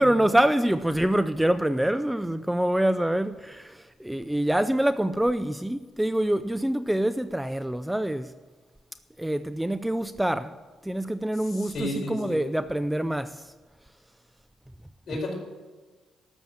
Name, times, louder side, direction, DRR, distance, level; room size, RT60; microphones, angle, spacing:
voice 1, 0.0-8.3 9.2-10.6 10.8-13.5, right 1 dB, 5° right, 0.4 m, -25 dB
voice 2, 11.5-12.4 15.1-15.3, left 1 dB, 55° left, 4.7 m, -32 dB
13.0 x 7.1 x 7.8 m
cardioid pair, 90°, 0 cm